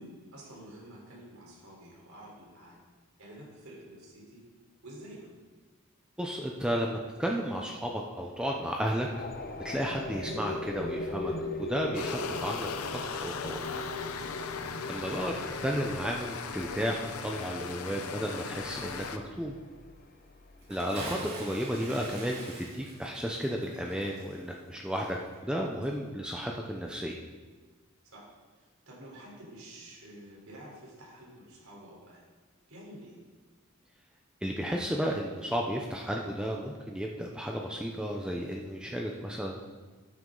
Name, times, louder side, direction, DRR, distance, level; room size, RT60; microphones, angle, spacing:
voice 1, 0.0-2.8 3.2-4.4 4.8-5.3 14.4-14.8 20.9-21.1 28.1-28.3 28.5-32.2 32.7-33.2, right 1 dB, 75° right, -3 dB, 3.9 m, -49 dB
voice 2, 6.2-9.1 9.6-11.3 11.6-12.7 12.9-13.6 14.9-15.3 15.6-19.6 20.7-25.2 25.4-27.2 34.4-39.6, equal, 5° right, 0 dB, 0.6 m, -33 dB
sound 1, 9.1-20.7, left 2 dB, 40° left, 0.8 m, -40 dB
sound 2, 11.9-19.2, left 5 dB, 85° left, 0.8 m, -38 dB
Bathtub (filling or washing) / Splash splatter, 20.6-25.6 25.8-25.9, right 1 dB, 45° right, 3.0 m, -43 dB
12.5 x 9.3 x 3.9 m, 1.3 s
head